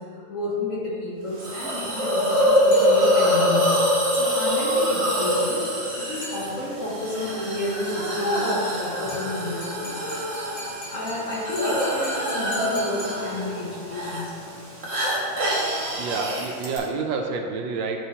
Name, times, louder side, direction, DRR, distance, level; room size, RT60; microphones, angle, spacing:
voice 1, 0.1-3.8 4.1-10.1 10.9-14.4, left 2 dB, 50° left, -5 dB, 1.1 m, -31 dB
Hiss, 1.4-16.8, equal, 40° right, 1.3 m, -25 dB
sound 1, 2.7-3.5 6.2-7.0 9.1-13.8, right 1 dB, 75° left, 2.3 m, -39 dB
voice 2, 16.0-18.0, right 4 dB, 75° right, 3 dB, 1.3 m, -28 dB
10.5 x 3.6 x 2.8 m, 2.3 s
omnidirectional pair, 2.1 m